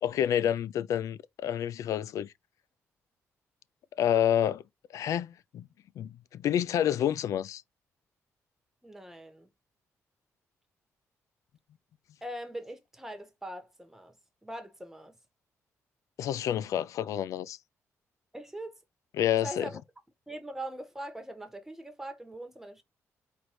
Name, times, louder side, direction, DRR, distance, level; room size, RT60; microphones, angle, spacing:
voice 1, 0.0-2.3 4.0-4.6 4.9-5.7 6.0-7.6 16.2-17.6 19.2-19.7, left 10 dB, 70° left, 0.3 m, -28 dB
voice 2, 8.8-9.5 12.2-14.2 14.4-15.2 18.3-18.7 19.4-19.8 20.3-22.8, right 1 dB, 5° right, 1.3 m, -41 dB
4.5 x 2.5 x 3.1 m
cardioid pair, 90°, 6 cm